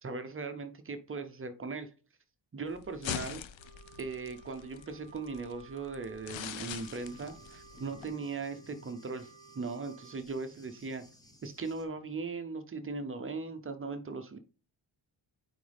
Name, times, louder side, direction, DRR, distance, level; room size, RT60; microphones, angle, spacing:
voice 1, 0.0-1.9 2.5-3.4 4.0-9.3 9.5-11.0 11.4-14.4, right 4 dB, 30° right, 0.6 m, -39 dB
sound 1, 2.7-8.1, left 10 dB, 80° left, 0.7 m, -43 dB
Wind instrument woodwind instrument, 3.6-10.2, right 6 dB, 10° right, 2.6 m, -57 dB
Thunder, 6.7-11.9, left 1 dB, 10° left, 1.0 m, -57 dB
9.1 x 4.0 x 3.4 m
wide cardioid pair, 145°, 45 cm